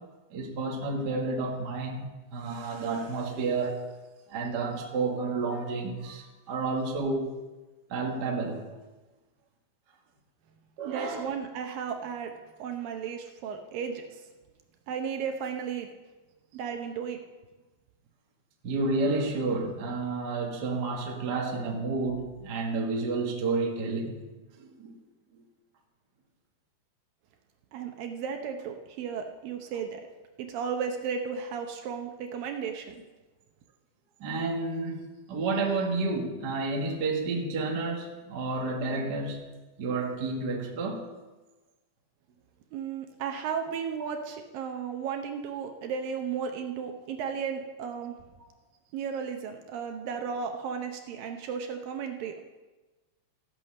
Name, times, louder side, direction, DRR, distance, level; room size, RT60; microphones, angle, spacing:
voice 1, 0.3-3.8 4.3-7.4 7.9-8.8 10.8-11.3 18.6-24.2 24.6-24.9 34.2-39.5 39.8-41.0, right 3 dB, 45° right, 1.4 m, -30 dB
voice 2, 10.8-12.3 12.6-14.2 14.9-15.9 16.5-17.2 27.7-30.0 30.4-33.0 42.7-48.2 48.9-52.5, right 6 dB, 75° right, 2.4 m, -34 dB
14.5 x 9.0 x 6.5 m
omnidirectional pair, 4.5 m